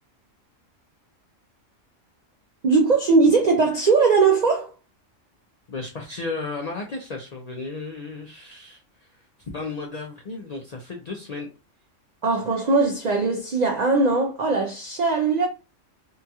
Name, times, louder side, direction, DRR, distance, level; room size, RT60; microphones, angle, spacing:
voice 1, 2.6-4.7 12.2-15.5, right 4 dB, 70° right, 0.4 m, -20 dB
voice 2, 5.7-9.2 9.5-11.5, left 3 dB, 65° left, 0.4 m, -34 dB
2.8 x 2.3 x 2.7 m
omnidirectional pair, 1.3 m